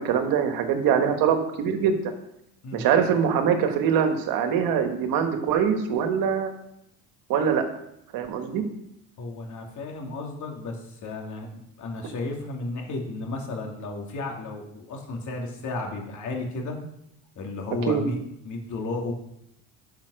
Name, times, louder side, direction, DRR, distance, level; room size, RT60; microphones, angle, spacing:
voice 1, 0.0-2.0 2.7-6.5 7.3-7.6 8.1-8.6 17.9-18.0, right 7 dB, 65° right, 6 dB, 1.7 m, -23 dB
voice 2, 9.2-16.7 17.4-18.2 18.4-19.1, left 2 dB, 50° left, 1 dB, 2.9 m, -33 dB
10.5 x 5.8 x 6.4 m, 0.78 s
supercardioid pair, 105°, 37 cm